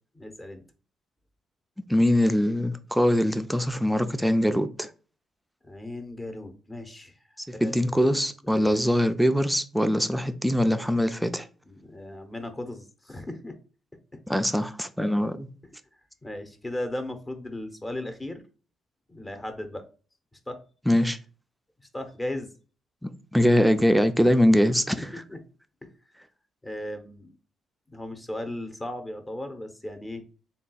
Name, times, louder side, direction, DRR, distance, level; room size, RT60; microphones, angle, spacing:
voice 1, 0.2-0.6 5.6-7.1 7.5-8.2 11.7-13.5 16.2-18.4 19.1-19.8 20.5-20.6 21.9-22.5 25.0-25.4 25.8-25.9 26.6-27.3 27.9-30.3, left 1 dB, 20° left, 0.8 m, -36 dB
voice 2, 1.9-4.9 7.6-11.5 14.3-15.5 20.9-21.2 23.3-25.2, equal, 5° right, 0.4 m, -22 dB
3.5 x 2.3 x 4.0 m
cardioid pair, 90°, 0 cm